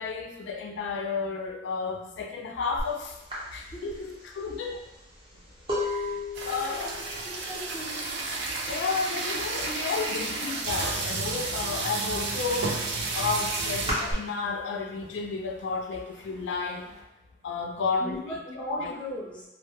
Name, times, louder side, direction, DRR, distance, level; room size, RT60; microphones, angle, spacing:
voice 1, 0.0-3.2 3.5-4.8 5.8-6.2 6.5-7.0 8.7-12.8 13.1-16.8 17.4-19.0, left 4 dB, 85° left, 1 dB, 0.3 m, -32 dB
sound 1, 2.8-2.9 3.3-9.0 9.2-9.7 10.0-11.2 11.6-14.1, left 1 dB, 30° right, 0.7 m, -35 dB
sound 2, 6.3-14.2 14.7-14.8 15.0-15.3 15.7-17.0, right 3 dB, 75° right, 0.4 m, -32 dB
voice 2, 6.6-6.9 7.2-8.0 18.0-19.4, equal, 5° left, -5 dB, 0.5 m, -38 dB
2.1 x 2.0 x 2.9 m, 0.91 s
head